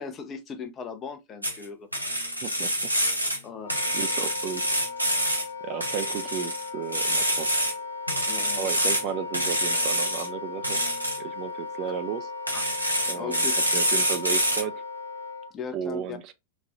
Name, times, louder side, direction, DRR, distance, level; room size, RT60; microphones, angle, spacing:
voice 1, 0.0-1.9 3.4-3.7 8.3-8.7 12.5-12.6 13.1-13.5 15.5-16.2, left 6 dB, 30° left, 0.6 m, -37 dB
sound 1, 1.4-1.6 1.9-3.4 3.7-5.5 5.8-7.7 8.1-9.0 9.3-10.3 10.6-11.2 12.5-14.6, equal, 90° right, 0.7 m, -26 dB
voice 2, 2.4-2.9 3.9-4.7 5.6-7.5 8.6-10.8 11.2-12.3 13.1-14.8 15.7-16.3, right 8 dB, 40° right, 0.3 m, -34 dB
Wind instrument woodwind instrument, 3.6-15.5, left 4 dB, 85° left, 0.5 m, -37 dB
4.1 x 2.3 x 2.4 m
figure-of-eight pair, 90°, 0 cm